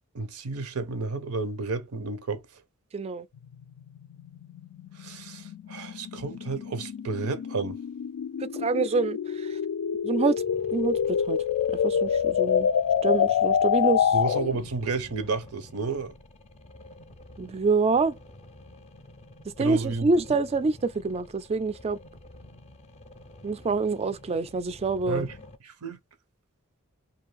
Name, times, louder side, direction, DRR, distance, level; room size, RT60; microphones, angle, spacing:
voice 1, 0.1-2.4 4.9-7.8 14.1-16.1 19.6-20.1 25.1-25.3 25.8-26.0, right 4 dB, 90° right, 0.7 m, -31 dB
voice 2, 2.9-3.3 8.4-9.6 10.0-10.4 10.7-11.4 11.7-12.7 13.0-14.2 17.4-18.2 19.4-22.0 23.4-25.3, right 4 dB, 30° right, 0.3 m, -26 dB
sound 1, 3.4-14.7, left 8 dB, 90° left, 0.3 m, -27 dB
sound 2, 10.4-25.6, left 1 dB, 30° left, 0.5 m, -49 dB
2.6 x 2.4 x 3.0 m
head